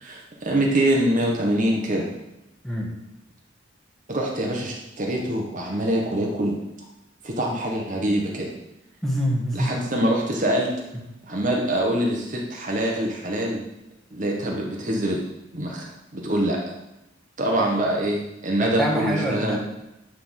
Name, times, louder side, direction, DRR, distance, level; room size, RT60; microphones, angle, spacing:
voice 1, 0.0-2.1 4.1-6.5 7.2-8.5 9.5-10.7 11.2-13.6 14.1-15.2 15.5-16.6 17.4-19.6, right 1 dB, 40° right, -1 dB, 1.3 m, -24 dB
voice 2, 2.6-3.0 9.0-9.8 18.6-19.6, equal, ahead, -4 dB, 1.6 m, -25 dB
11.0 x 3.9 x 6.5 m, 0.91 s
head